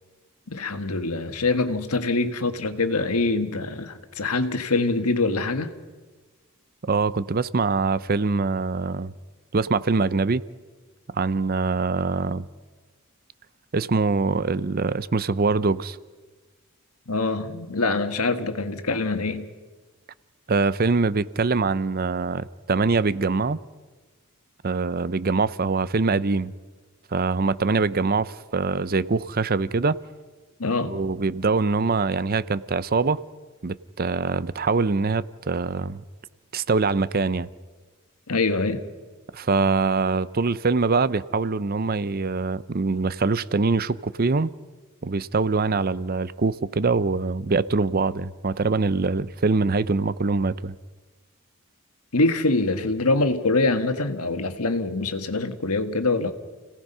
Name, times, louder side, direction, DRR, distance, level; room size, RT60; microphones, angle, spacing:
voice 1, 0.5-5.7 17.1-19.5 30.6-31.0 38.3-38.8 52.1-56.3, left 3 dB, 85° left, 1.6 m, -24 dB
voice 2, 6.9-9.1 9.5-10.4 11.1-12.5 13.7-16.0 20.5-23.6 24.6-26.5 27.1-30.0 30.9-33.2 33.6-36.0 36.5-37.5 39.3-44.5 45.0-50.7, right 4 dB, 40° right, 0.6 m, -23 dB
30.0 x 18.0 x 5.6 m
head